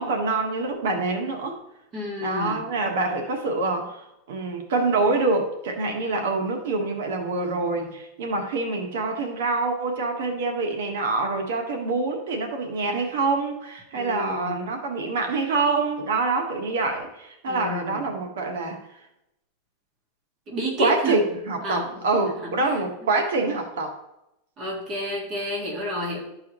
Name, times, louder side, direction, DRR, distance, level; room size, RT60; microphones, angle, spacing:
voice 1, 0.0-1.5 2.2-18.8 20.8-24.0, right 3 dB, 85° right, 3 dB, 1.4 m, -26 dB
voice 2, 1.9-2.6 13.9-14.5 17.5-18.1 20.5-21.2 21.6-22.0 22.4-22.8 24.6-26.2, left 1 dB, 25° right, -2 dB, 1.8 m, -30 dB
12.5 x 4.7 x 3.0 m, 0.88 s
supercardioid pair, 175°, 0 cm